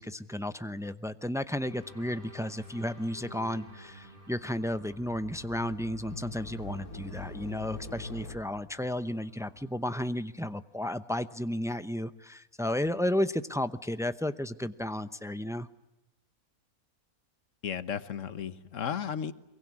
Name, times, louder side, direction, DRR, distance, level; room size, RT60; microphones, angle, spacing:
voice 1, 0.0-15.7, left 1 dB, 5° right, 12 dB, 0.4 m, -33 dB
sound 1, 1.7-9.7, left 1 dB, 85° right, 8.4 m, -52 dB
sound 2, 5.0-8.4, left 3 dB, 85° left, 2.6 m, -43 dB
voice 2, 17.6-19.3, left 8 dB, 60° left, 13 dB, 1.5 m, -34 dB
23.5 x 23.0 x 9.7 m, 0.95 s
omnidirectional pair, 1.5 m